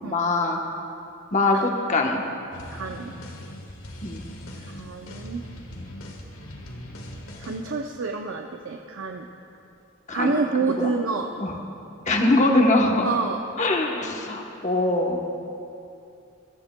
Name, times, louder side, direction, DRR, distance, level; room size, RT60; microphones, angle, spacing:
voice 1, 0.0-0.6 1.3-2.2 4.0-4.2 10.1-10.4 10.7-10.9 11.4-11.6 12.1-13.1 13.6-15.3, left 2 dB, 35° left, 1 dB, 1.1 m, -22 dB
sound 1, 2.5-7.7, equal, 85° left, 1.5 m, -40 dB
voice 2, 2.7-3.1 4.7-5.4 7.4-9.3 10.1-11.3 13.0-13.4, right 4 dB, 65° right, 2 dB, 0.6 m, -28 dB
22.0 x 13.5 x 2.3 m, 2.7 s
head